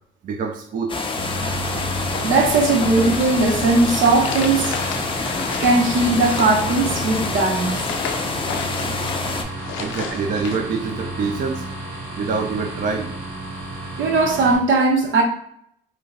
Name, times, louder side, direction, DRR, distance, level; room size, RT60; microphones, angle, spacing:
voice 1, 0.2-1.0 1.3-1.4 9.8-11.7 12.1-13.2, right 4 dB, 45° right, 4 dB, 0.4 m, -25 dB
sound 1, 0.9-9.4, left 3 dB, 25° left, 0.4 m, -27 dB
sound 2, 1.2-14.6, right 1 dB, 90° right, 1.4 m, -31 dB
sound 3, 2.0-10.6, left 7 dB, 85° left, 0.4 m, -34 dB
voice 2, 2.2-4.8 5.6-7.8 14.0-15.2, right 3 dB, 75° right, 2 dB, 0.7 m, -18 dB
2.6 x 2.2 x 3.2 m, 0.69 s
cardioid pair, 90°, 20 cm